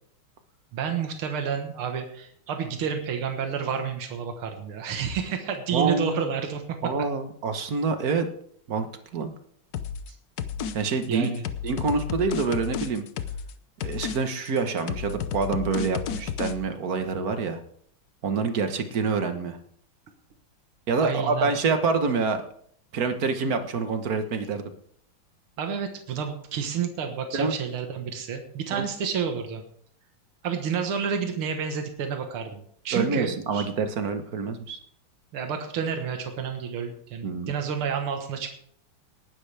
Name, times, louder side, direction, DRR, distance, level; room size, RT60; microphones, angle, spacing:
voice 1, 0.7-6.6 11.1-11.4 21.0-21.5 25.6-29.6 30.4-33.7 35.3-38.6, right 7 dB, 75° right, 4 dB, 2.3 m, -30 dB
voice 2, 5.7-6.2 6.8-8.3 8.7-8.9 9.1-9.3 10.7-11.3 11.6-13.0 13.8-17.6 18.2-19.6 20.9-22.4 22.9-24.6 27.3-27.5 28.7-28.9 32.9-34.8 37.2-37.5, right 4 dB, 50° right, 7 dB, 1.5 m, -26 dB
sound 1, 9.7-10.1 10.4-10.7 11.0-13.5 13.8-14.2 14.5-16.5, left 7 dB, 60° left, 1.1 m, -32 dB
19.0 x 11.5 x 3.4 m, 0.65 s
omnidirectional pair, 2.4 m